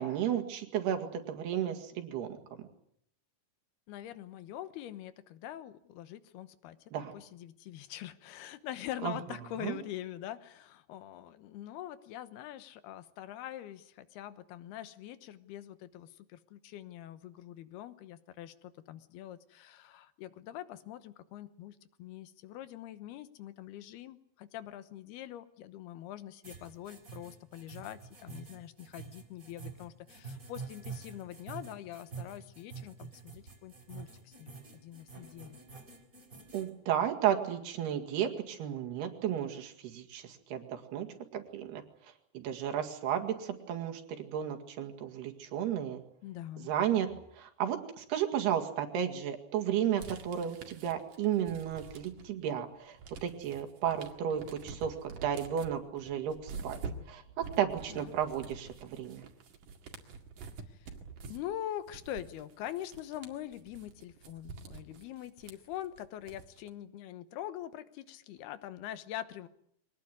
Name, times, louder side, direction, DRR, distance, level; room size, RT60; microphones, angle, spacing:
voice 1, 0.0-2.4 6.9-7.1 9.0-9.2 9.6-9.8 36.5-41.1 41.3-41.8 42.3-46.0 46.6-47.1 47.4-53.0 53.2-56.8 57.1-59.2, right 9 dB, 70° right, 4 dB, 3.9 m, -33 dB
voice 2, 3.9-6.8 7.1-35.6 46.2-46.7 57.9-58.1 60.7-60.9 61.2-69.5, left 12 dB, 70° left, 13 dB, 2.9 m, -44 dB
sound 1, 26.4-36.7, right 5 dB, 20° right, 3.6 m, -47 dB
sound 2, 50.0-52.4 52.8-66.7, right 5 dB, 55° right, 3.1 m, -47 dB
23.5 x 19.0 x 9.6 m, 0.72 s
omnidirectional pair, 5.1 m